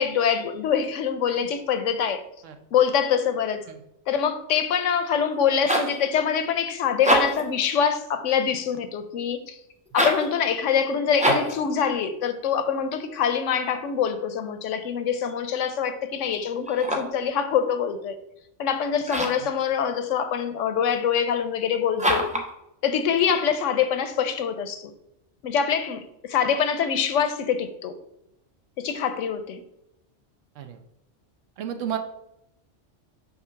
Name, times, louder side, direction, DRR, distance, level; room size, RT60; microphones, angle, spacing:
voice 1, 0.0-2.2 2.7-3.7 4.1-9.6 9.9-18.2 18.6-22.3 22.8-24.9 25.4-28.0 28.8-29.6, left 7 dB, 90° left, 1.0 m, -24 dB
sound 1, 5.3-6.0 6.9-7.5 9.9-10.3 11.2-11.6 16.6-17.2 19.0-19.5 22.0-22.5, equal, 5° right, 0.7 m, -24 dB
voice 2, 31.6-32.0, right 9 dB, 85° right, 1.1 m, -31 dB
5.9 x 3.0 x 5.6 m
omnidirectional pair, 1.3 m